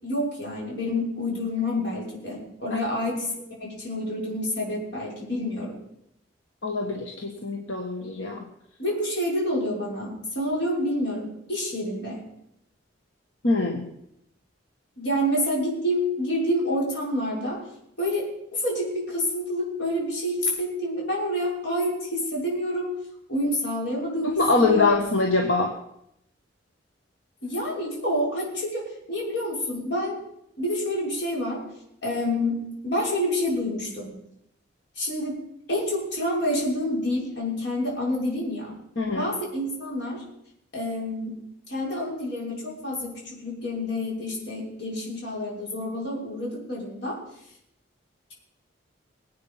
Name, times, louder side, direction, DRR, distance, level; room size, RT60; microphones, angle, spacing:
voice 1, 0.0-5.8 8.8-12.2 15.0-17.6 18.0-22.9 23.3-24.9 27.4-30.2 30.6-31.6 32.0-34.1 35.0-35.4 35.7-38.7 39.1-40.2 40.7-41.4 41.7-47.2, left 1 dB, 60° left, -3 dB, 6.3 m, -28 dB
voice 2, 6.6-8.4 13.4-13.9 24.2-25.7 39.0-39.3, left 3 dB, 80° left, 2 dB, 1.7 m, -23 dB
22.5 x 8.8 x 5.9 m, 0.78 s
head